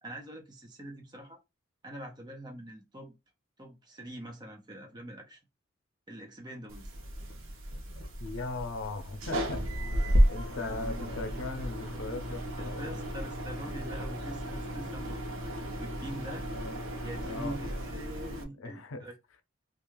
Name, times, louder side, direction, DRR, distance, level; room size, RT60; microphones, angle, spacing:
voice 1, 0.0-1.4 1.8-3.1 3.6-5.4 6.1-7.0 12.5-16.5 17.0-19.1, right 1 dB, 20° right, 0.6 m, -44 dB
sound 1, 6.7-18.4, equal, 80° right, 0.8 m, -33 dB
voice 2, 8.2-9.6 10.3-13.1 16.5-16.8 17.3-17.6 18.6-19.1, left 3 dB, 85° left, 0.6 m, -39 dB
2.4 x 2.3 x 3.0 m
head